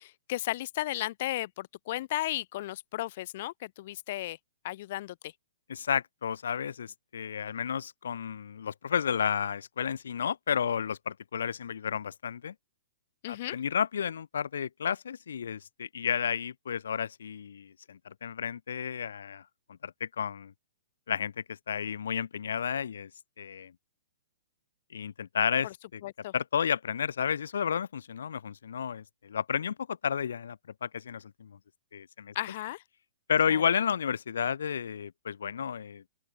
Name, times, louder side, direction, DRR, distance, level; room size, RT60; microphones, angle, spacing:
voice 1, 0.0-4.4 4.6-5.3 13.2-13.6 25.6-25.7 26.0-26.3 32.3-32.8 33.5-33.6, left 15 dB, 45° left, 5.1 m, -35 dB
voice 2, 5.7-12.5 13.3-19.4 19.8-20.5 21.1-21.3 21.7-23.1 23.4-23.7 24.9-26.0 26.3-30.6 30.8-31.5 31.9-32.3 33.3-36.0, left 7 dB, 80° left, 5.4 m, -32 dB
open air
hypercardioid pair, 155°, 0 cm